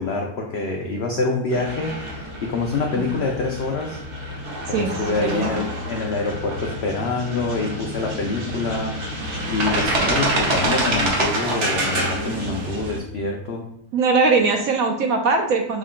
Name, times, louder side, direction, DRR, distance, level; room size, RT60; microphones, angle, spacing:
voice 1, 0.0-4.0 4.3-4.4 4.7-9.0 9.5-13.6, left 3 dB, 85° left, 1 dB, 0.5 m, -26 dB
sound 1, 1.5-13.0, right 1 dB, 50° right, 1.1 m, -27 dB
voice 2, 4.7-5.6 13.9-15.8, right 4 dB, 70° right, 3 dB, 0.9 m, -21 dB
6.1 x 2.2 x 3.6 m, 0.72 s
omnidirectional pair, 1.8 m